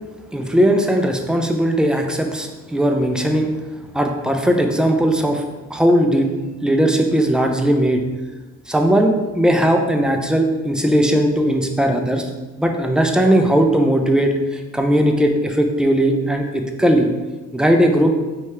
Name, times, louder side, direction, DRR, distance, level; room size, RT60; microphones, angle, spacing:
voice 1, 0.3-3.5 3.9-5.4 5.7-6.3 6.6-8.0 8.7-12.3 12.6-17.1 17.5-18.1, right 1 dB, 5° right, 3 dB, 0.5 m, -18 dB
4.7 x 2.7 x 3.2 m, 1.2 s
cardioid pair, 90°, 30 cm